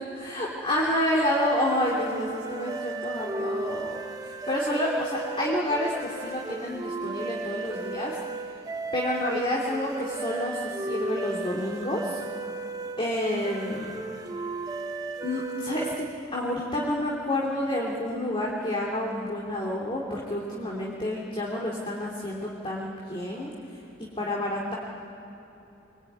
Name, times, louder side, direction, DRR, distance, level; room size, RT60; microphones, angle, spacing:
voice 1, 0.1-4.0 4.5-8.1 8.9-12.2 13.0-14.0 15.2-16.0 16.3-23.5 24.0-24.7, left 1 dB, 30° left, -3 dB, 3.1 m, -29 dB
sound 1, 1.2-16.2, right 3 dB, 20° right, 1.2 m, -35 dB
25.0 x 23.5 x 9.5 m, 2.9 s
head